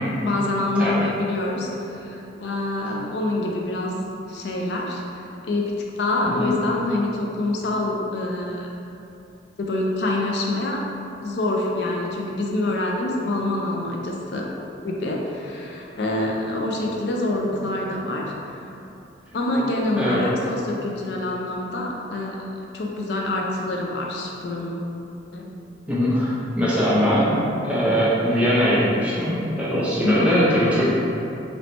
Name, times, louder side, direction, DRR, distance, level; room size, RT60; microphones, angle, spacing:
voice 1, 0.2-4.0 4.2-8.7 9.6-10.8 11.2-14.5 14.8-18.7 19.3-22.5 22.7-24.9 25.3-25.5 26.6-27.3 30.0-30.3, left 2 dB, 70° left, -1 dB, 0.4 m, -26 dB
voice 2, 6.2-6.5 20.0-20.2 25.9-30.8, equal, 5° right, -9 dB, 0.6 m, -21 dB
3.1 x 2.8 x 4.2 m, 2.8 s
head